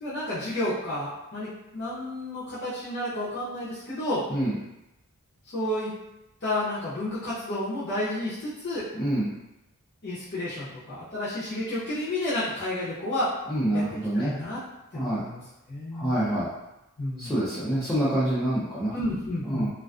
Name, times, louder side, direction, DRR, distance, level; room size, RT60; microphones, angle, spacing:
voice 1, 0.0-4.2 5.5-6.0 6.4-8.9 10.0-13.3 13.7-13.8 14.1-14.6 14.9-15.4 15.7-16.2 17.0-17.3 18.9-19.7, left 1 dB, 50° left, -11 dB, 0.6 m, -31 dB
voice 2, 13.5-14.3 14.9-15.2 15.9-16.5 17.2-18.9 19.4-19.7, right 1 dB, 5° left, -11 dB, 0.4 m, -26 dB
2.4 x 2.3 x 2.3 m, 0.92 s
head